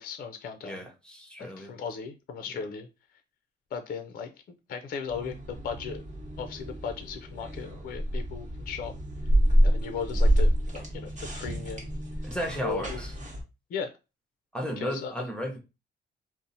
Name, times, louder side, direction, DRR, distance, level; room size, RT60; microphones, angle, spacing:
voice 1, 0.0-0.8 1.4-2.9 3.7-4.3 4.7-6.0 6.4-8.9 9.6-11.9 12.6-13.0 13.7-13.9 14.8-15.1, left 6 dB, 50° left, 7 dB, 0.4 m, -36 dB
voice 2, 0.6-1.7 12.2-13.1 14.5-15.6, equal, 5° left, 0 dB, 0.7 m, -34 dB
sound 1, 5.1-13.4, equal, 40° right, 1.1 m, -27 dB
2.7 x 2.0 x 2.6 m, 0.28 s
cardioid pair, 90°, 20 cm